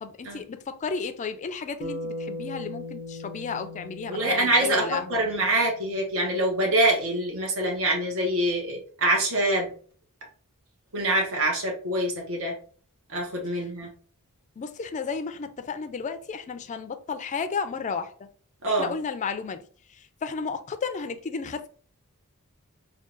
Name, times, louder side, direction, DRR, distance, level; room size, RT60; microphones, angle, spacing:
voice 1, 0.0-5.2 14.6-18.3 18.7-19.6 20.2-21.7, left 5 dB, 35° left, 0.4 m, -33 dB
Bass guitar, 1.8-6.2, left 2 dB, 40° right, 1.3 m, -39 dB
voice 2, 4.1-9.7 10.9-12.5 13.1-13.9 18.6-18.9, right 1 dB, 65° right, 1.1 m, -25 dB
3.7 x 2.3 x 3.7 m
head